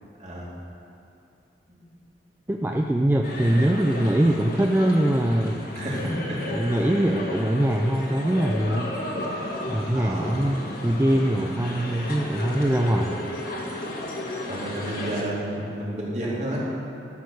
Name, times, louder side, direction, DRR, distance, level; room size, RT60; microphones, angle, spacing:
voice 1, 2.5-5.7 6.5-8.9 9.7-13.2, right 1 dB, 10° right, 2 dB, 0.3 m, -23 dB
sound 1, 3.2-15.2, left 1 dB, 55° left, 1.5 m, -33 dB
voice 2, 5.7-6.5 9.9-10.4 14.5-16.6, right 1 dB, 40° right, -6 dB, 2.6 m, -31 dB
12.0 x 6.5 x 6.4 m, 2.6 s
head